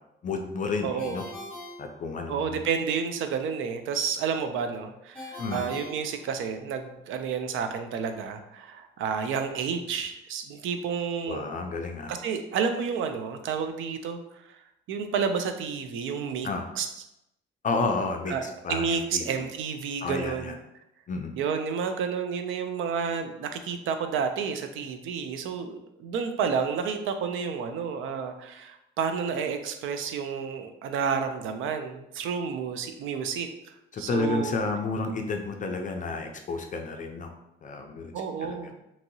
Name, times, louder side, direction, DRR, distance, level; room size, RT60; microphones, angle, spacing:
voice 1, 0.2-1.2 1.8-2.6 5.4-5.6 11.3-12.1 16.4-16.6 17.6-19.3 20.0-20.5 21.1-21.4 33.9-37.3 37.6-38.1 38.4-38.6, left 3 dB, 40° left, 4 dB, 0.4 m, -31 dB
voice 2, 0.8-1.2 2.3-11.4 12.1-14.2 14.9-16.5 16.8-16.9 18.3-20.5 21.4-33.5 34.0-34.6 38.1-38.7, right 6 dB, 80° right, 7 dB, 0.4 m, -30 dB
Ringtone, 1.0-2.6 5.1-6.8, left 2 dB, 5° left, 1.3 m, -43 dB
2.9 x 2.6 x 2.7 m, 0.86 s
cardioid pair, 90°, 20 cm